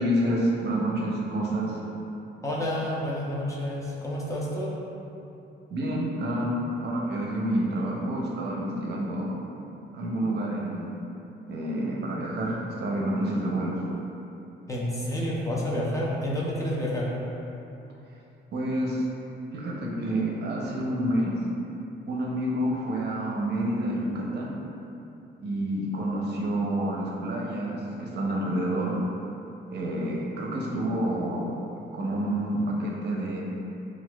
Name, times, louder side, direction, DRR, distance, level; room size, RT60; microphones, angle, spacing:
voice 1, 0.0-1.8 5.7-6.5 6.8-9.3 9.9-10.9 11.5-13.8 18.5-19.1 19.5-21.3 22.1-24.5 25.4-29.0 29.7-31.5 31.8-33.4, right 1 dB, 60° right, -3 dB, 0.6 m, -28 dB
voice 2, 2.4-4.7 14.7-17.1, left 1 dB, 15° left, -5 dB, 0.6 m, -29 dB
4.1 x 2.3 x 2.3 m, 2.9 s
cardioid pair, 90°, 20 cm